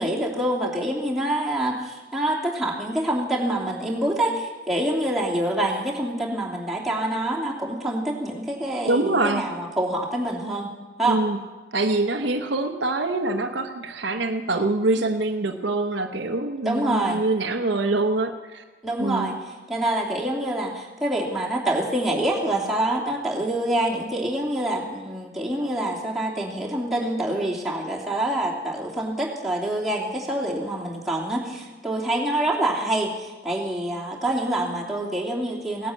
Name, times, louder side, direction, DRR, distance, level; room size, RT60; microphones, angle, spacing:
voice 1, 0.0-10.7 11.0-11.2 16.6-17.2 18.8-19.4 19.7-35.9, right 1 dB, ahead, -6 dB, 3.0 m, -26 dB
voice 2, 8.9-9.4 11.0-11.4 11.7-18.6 19.0-19.3, right 2 dB, 65° right, 6 dB, 0.9 m, -24 dB
17.5 x 9.9 x 8.5 m, 1.2 s
head